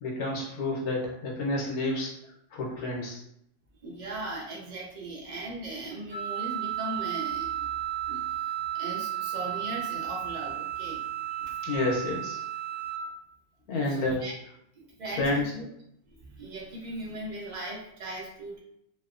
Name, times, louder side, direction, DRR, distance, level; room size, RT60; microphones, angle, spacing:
voice 1, 0.0-2.1 2.5-3.2 11.6-12.4 13.7-14.2 15.2-15.4, left 2 dB, 80° left, -2 dB, 1.3 m, -29 dB
voice 2, 3.8-7.7 8.1-8.2 8.7-11.0 11.3-11.6 13.8-14.3 14.8-15.7 16.1-18.6, right 1 dB, 50° right, -3 dB, 0.5 m, -38 dB
Wind instrument woodwind instrument, 6.1-13.0, right 12 dB, 70° right, 1.1 m, -33 dB
3.1 x 2.1 x 2.4 m, 0.74 s
omnidirectional pair, 1.6 m